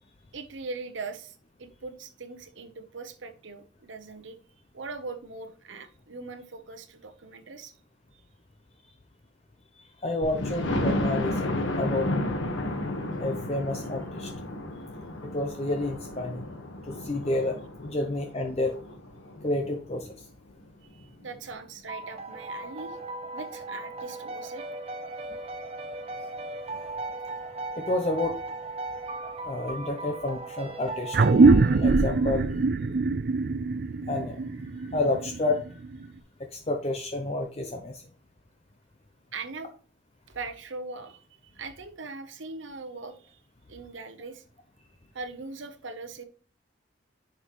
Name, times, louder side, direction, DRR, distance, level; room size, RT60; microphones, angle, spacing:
voice 1, 0.3-4.4 4.7-7.7 20.9-23.0 23.3-24.6 39.3-39.7 40.3-43.4 43.7-44.4 45.1-46.2, right 3 dB, 75° right, 7 dB, 0.9 m, -40 dB
voice 2, 10.0-12.2 13.2-14.3 15.2-16.5 16.9-18.8 19.4-20.1 27.7-28.4 29.4-32.6 34.1-35.8 36.5-38.0, left 2 dB, 30° left, 4 dB, 0.6 m, -30 dB
Thunder, 10.2-19.9 20.5-20.6 21.0-21.1 21.4-21.5, left 1 dB, 80° left, 1.4 m, -32 dB
sound 1, 21.9-32.3, right 2 dB, 30° right, 0.9 m, -37 dB
sound 2, 31.1-36.0, right 3 dB, 55° right, 0.4 m, -22 dB
10.5 x 5.5 x 3.1 m, 0.40 s
head